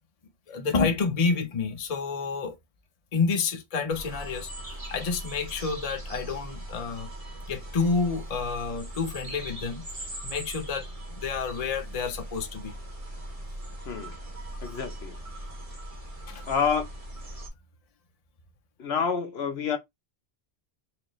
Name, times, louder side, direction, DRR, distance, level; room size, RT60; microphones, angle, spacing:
voice 1, 0.5-2.6 3.1-7.1 7.5-10.9 11.1-12.7 16.3-16.4, left 4 dB, 40° left, 0.7 m, -29 dB
sound 1, 3.9-17.5, right 1 dB, 35° right, 1.3 m, -40 dB
voice 2, 14.6-15.1 16.5-16.9 18.8-19.8, left 6 dB, 70° left, 1.0 m, -28 dB
4.6 x 2.5 x 3.0 m
omnidirectional pair, 1.1 m